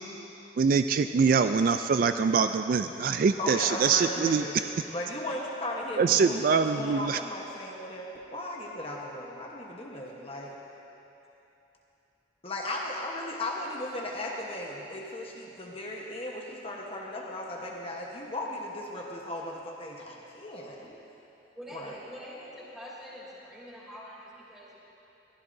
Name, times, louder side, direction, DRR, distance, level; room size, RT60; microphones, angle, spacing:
voice 1, 0.6-4.4 6.0-7.2, right 5 dB, 50° right, 9 dB, 0.3 m, -24 dB
voice 2, 3.4-10.6 12.4-21.0 21.7-21.9, left 1 dB, 35° left, -2 dB, 1.1 m, -36 dB
voice 3, 21.5-24.8, equal, 5° right, -7 dB, 3.0 m, -45 dB
22.0 x 14.5 x 2.7 m, 3.0 s
head